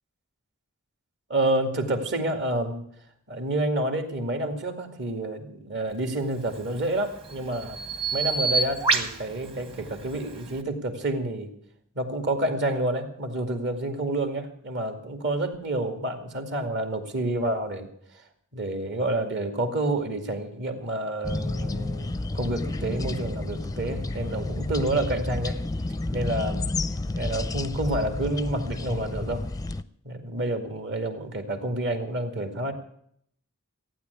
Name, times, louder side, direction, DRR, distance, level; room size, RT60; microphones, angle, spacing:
voice 1, 1.3-2.8 3.3-7.8 8.1-11.5 12.0-17.9 18.5-25.6 26.1-26.7 27.1-29.4 30.0-32.7, right 1 dB, 55° right, 5 dB, 2.3 m, -29 dB
Bird vocalization bird call bird song, 6.4-10.6, right 4 dB, 25° right, 1.3 m, -29 dB
sound 1, 21.2-29.8, left 2 dB, 15° left, 0.5 m, -31 dB
15.5 x 9.5 x 8.1 m, 0.69 s
head